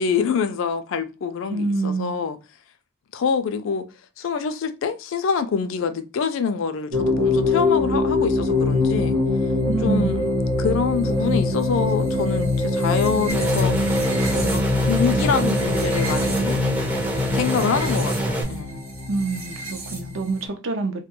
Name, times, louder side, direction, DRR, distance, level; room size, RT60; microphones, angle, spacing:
voice 1, 0.0-2.4 3.1-3.9 4.2-9.2 9.8-10.2 10.6-14.0 14.3-14.6 14.9-16.6 17.3-18.8, left 6 dB, 70° left, 0.3 m, -25 dB
voice 2, 1.5-2.2 9.7-10.2 19.1-21.0, right 3 dB, 65° right, 0.5 m, -26 dB
sound 1, 6.9-20.5, left 2 dB, 85° right, 0.8 m, -23 dB
sound 2, 13.3-18.4, right 1 dB, 5° right, 0.4 m, -26 dB
2.2 x 2.1 x 2.8 m
head